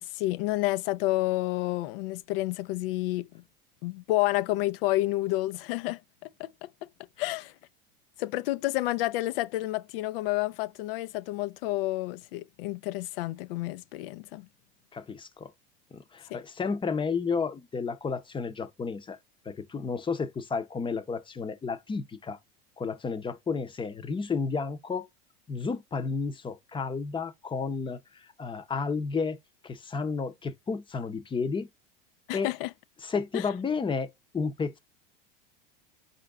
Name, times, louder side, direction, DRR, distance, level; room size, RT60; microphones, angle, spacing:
voice 1, 0.0-3.4 3.8-6.7 7.2-7.5 8.2-14.5 16.3-16.4 32.3-32.7 33.3-33.5, left 17 dB, 70° left, 0.5 m, -30 dB
voice 2, 14.9-15.5 15.9-19.2 19.4-22.4 22.8-25.1 25.5-29.4 29.6-31.7 32.3-32.5 33.0-34.8, left 5 dB, 15° left, 0.7 m, -32 dB
4.5 x 2.5 x 3.4 m
supercardioid pair, 105°, 29 cm